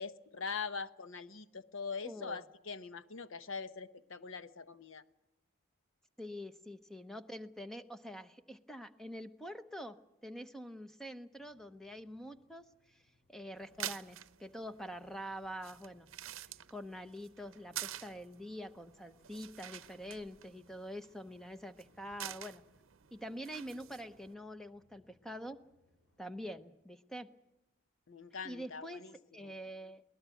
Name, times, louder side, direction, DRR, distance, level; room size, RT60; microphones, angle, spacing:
voice 1, 0.0-5.0 28.1-29.1 29.4-29.5, left 5 dB, 65° left, 0.9 m, -42 dB
voice 2, 2.0-2.4 6.2-10.0 10.2-16.1 16.7-22.6 23.1-25.6 26.2-27.3 28.4-30.0, equal, ahead, 0.7 m, -46 dB
sound 1, 11.3-26.6, left 1 dB, 90° left, 6.9 m, -75 dB
sound 2, 13.6-24.3, right 12 dB, 70° right, 0.7 m, -49 dB
22.0 x 18.5 x 8.3 m
head